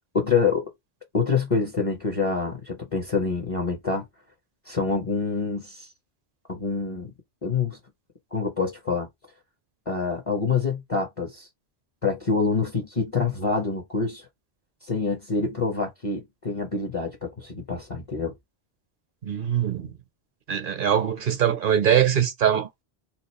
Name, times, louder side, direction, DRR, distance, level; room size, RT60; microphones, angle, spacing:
voice 1, 0.1-0.7 1.1-4.0 4.7-5.9 6.5-7.1 7.4-7.8 8.3-9.1 9.9-11.5 12.0-14.2 14.8-18.3, left 4 dB, 35° left, 0.8 m, -26 dB
voice 2, 19.2-19.9 20.5-22.8, right 9 dB, 60° right, 0.8 m, -22 dB
2.8 x 2.3 x 4.1 m
omnidirectional pair, 1.0 m